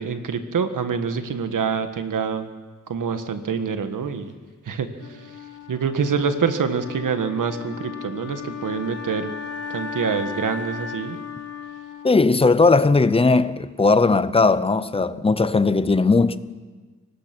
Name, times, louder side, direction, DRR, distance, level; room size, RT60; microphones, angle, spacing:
voice 1, 0.0-2.5 2.9-4.3 4.6-5.3 5.7-9.3 9.7-11.2, right 6 dB, 85° right, 1.6 m, -26 dB
Wind instrument woodwind instrument, 5.0-13.0, left 6 dB, 55° left, 2.9 m, -36 dB
voice 2, 12.0-16.4, left 3 dB, 20° left, 0.6 m, -18 dB
24.5 x 19.0 x 6.1 m
wide cardioid pair, 180°, 31 cm